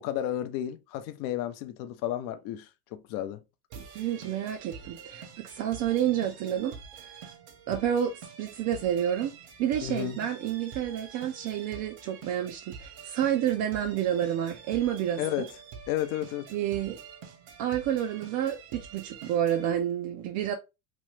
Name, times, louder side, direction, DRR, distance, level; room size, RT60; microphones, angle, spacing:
voice 1, 0.0-3.4 9.8-10.2 15.2-15.5 15.9-16.5, left 12 dB, 50° left, 0.5 m, -32 dB
voice 2, 3.7-7.1 7.7-9.3 9.6-15.2 16.5-17.0 17.6-20.5, right 10 dB, 45° right, 0.5 m, -29 dB
sound 1, 3.7-19.7, right 6 dB, 60° right, 1.1 m, -47 dB
3.1 x 2.7 x 3.1 m
supercardioid pair, 120°, 45 cm